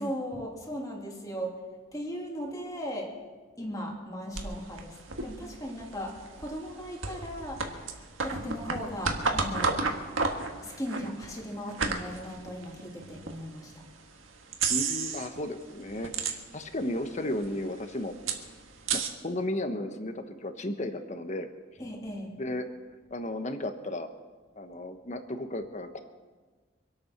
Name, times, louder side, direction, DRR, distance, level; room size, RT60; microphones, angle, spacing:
voice 1, 0.0-1.6 1.9-3.1 3.6-5.0 5.2-9.8 10.6-13.9 21.8-22.3, equal, 20° left, -1 dB, 2.7 m, -37 dB
sound 1, 4.3-13.4 13.9-14.0 14.5-15.4 15.7-16.8 17.1-17.2 17.4-19.1, right 4 dB, 85° right, 1.7 m, -32 dB
voice 2, 14.7-18.1 18.9-21.5 22.4-22.6 23.1-24.1 24.6-26.0, left 1 dB, 35° left, 7 dB, 1.2 m, -34 dB
25.5 x 8.6 x 6.0 m, 1.4 s
head